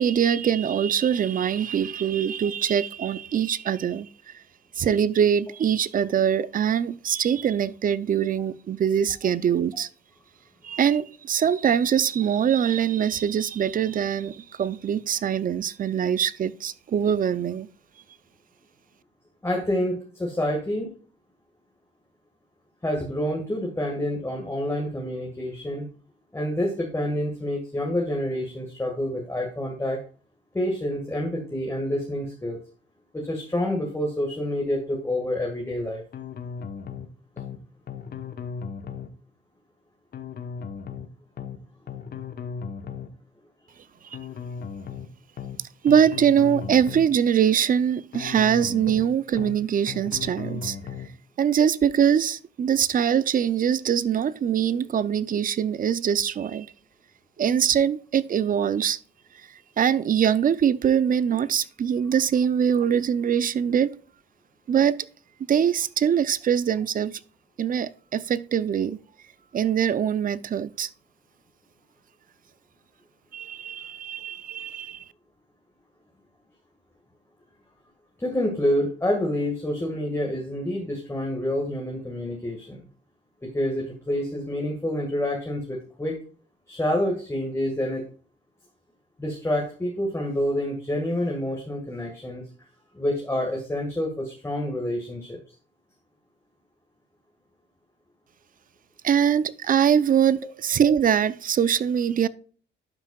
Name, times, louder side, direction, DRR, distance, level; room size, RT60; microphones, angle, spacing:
voice 1, 0.0-4.1 4.8-9.9 10.6-17.7 45.8-50.8 51.4-56.7 57.4-59.0 59.8-63.9 64.7-65.0 65.5-67.2 67.6-69.0 69.5-70.9 73.3-75.0 99.0-102.3, right 8 dB, 45° right, 0.5 m, -23 dB
voice 2, 19.4-20.9 22.8-25.9 26.3-30.0 30.5-32.6 33.1-36.0 78.2-82.8 83.4-86.2 86.7-88.1 89.2-92.5 92.9-95.4 100.4-100.5, left 1 dB, 15° left, 1.8 m, -28 dB
sound 1, 36.1-37.1 37.4-37.6 37.9-39.1 40.1-41.1 41.4-41.6 41.9-43.1 44.1-45.1 45.4-45.6 45.9-47.1 48.1-49.1 49.4-49.6 49.9-51.1, left 6 dB, 50° left, 1.1 m, -36 dB
12.0 x 5.8 x 2.4 m
cardioid pair, 90°, 20 cm